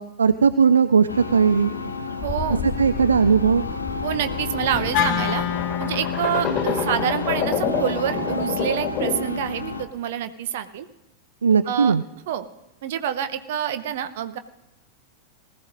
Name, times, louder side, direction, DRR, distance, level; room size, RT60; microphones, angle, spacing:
voice 1, 0.0-1.7 2.6-3.6 11.4-12.0, right 6 dB, 75° right, 13 dB, 0.3 m, -18 dB
sound 1, 1.1-9.8, left 4 dB, 75° left, 0.8 m, -31 dB
sound 2, 2.2-9.4, left 6 dB, 30° left, 2.0 m, -29 dB
voice 2, 2.2-2.6 4.0-5.5 5.8-10.9 11.7-11.9 12.3-12.5 12.8-14.4, right 10 dB, 55° right, 10 dB, 0.8 m, -27 dB
Wind instrument woodwind instrument, 4.9-9.2, left 11 dB, 45° left, 0.5 m, -30 dB
19.5 x 14.5 x 2.6 m, 0.97 s
figure-of-eight pair, 90°, 0 cm